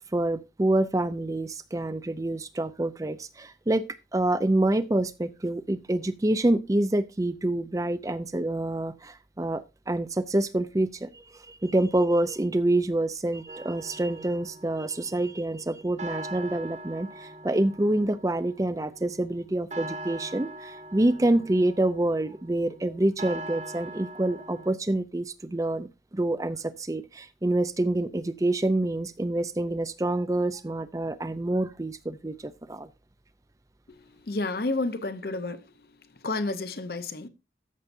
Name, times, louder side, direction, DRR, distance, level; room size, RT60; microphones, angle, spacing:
voice 1, 0.1-32.9, right 1 dB, 20° right, 0.5 m, -27 dB
sound 1, 13.5-24.7, right 1 dB, 40° right, 1.3 m, -42 dB
voice 2, 34.3-35.6 36.2-37.3, left 2 dB, 60° left, 0.8 m, -30 dB
13.5 x 6.7 x 2.6 m
head